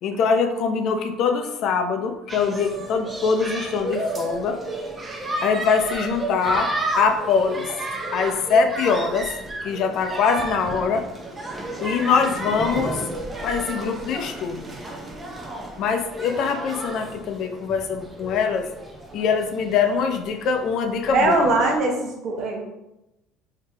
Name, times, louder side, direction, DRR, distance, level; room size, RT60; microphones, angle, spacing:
voice 1, 0.0-4.6 5.4-7.7 8.1-9.3 9.6-11.1 11.8-13.0 13.4-14.7 15.8-18.7 19.1-21.5, left 5 dB, 60° left, 6 dB, 0.4 m, -23 dB
sound 1, 2.3-21.8, right 1 dB, 25° right, 0.6 m, -32 dB
voice 2, 21.1-22.6, right 2 dB, 60° right, 1 dB, 0.9 m, -21 dB
3.4 x 2.8 x 3.3 m, 0.94 s
supercardioid pair, 90°, 0 cm